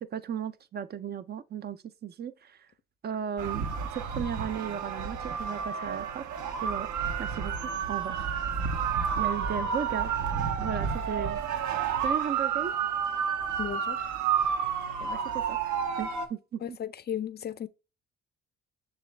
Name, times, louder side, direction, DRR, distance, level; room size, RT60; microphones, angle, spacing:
voice 1, 0.1-2.7 3.0-6.2 6.6-6.9 7.2-8.3 8.6-8.7 9.2-10.3 10.6-11.4 11.9-12.7 15.0-16.8, right 8 dB, 35° right, 0.4 m, -36 dB
sound 1, 3.4-16.3, right 7 dB, 75° right, 0.7 m, -30 dB
voice 2, 13.6-14.1 16.6-17.7, left 10 dB, 35° left, 0.4 m, -35 dB
6.6 x 2.4 x 3.2 m
cardioid pair, 90°, 30 cm